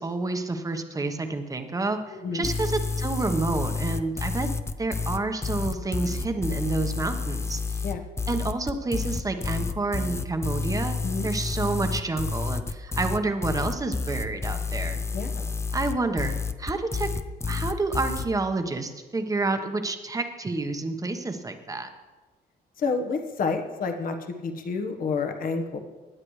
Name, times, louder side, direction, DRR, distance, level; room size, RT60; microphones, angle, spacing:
voice 1, 0.0-4.5 4.8-7.6 8.3-11.0 11.2-15.0 15.7-17.1 17.5-21.9, right 3 dB, 20° right, 6 dB, 1.1 m, -29 dB
voice 2, 2.1-2.5 7.8-8.0 11.0-11.3 15.1-15.5 22.8-25.8, left 4 dB, 55° left, 5 dB, 1.3 m, -29 dB
sound 1, 2.4-18.3, left 4 dB, 15° left, 0.5 m, -29 dB
17.0 x 9.6 x 3.2 m, 1.3 s
cardioid pair, 105°, 17 cm